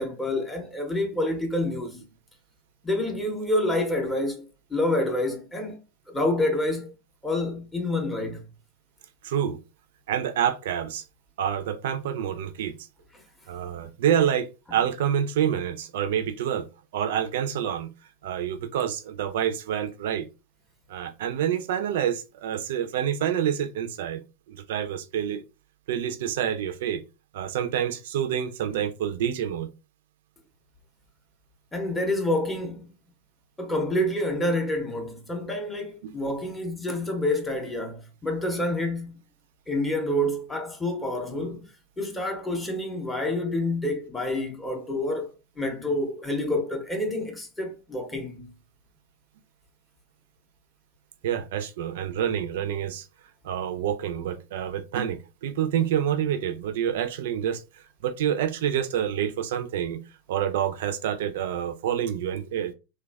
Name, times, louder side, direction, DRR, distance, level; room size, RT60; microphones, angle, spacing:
voice 1, 0.0-2.0 2.8-5.8 6.1-6.9 7.2-8.4 31.7-32.9 33.6-39.2 39.7-41.7 42.0-45.3 45.6-48.5, left 1 dB, 10° left, 0.6 m, -28 dB
voice 2, 9.2-9.6 10.1-11.0 11.4-12.8 13.5-16.7 16.9-17.9 18.2-20.3 20.9-24.2 24.5-25.4 25.9-27.0 27.3-29.7 36.0-36.1 51.2-53.1 53.4-57.6 58.0-60.0 60.3-62.7, right 9 dB, 55° right, 0.4 m, -27 dB
3.1 x 2.3 x 2.2 m
figure-of-eight pair, 90°, 0 cm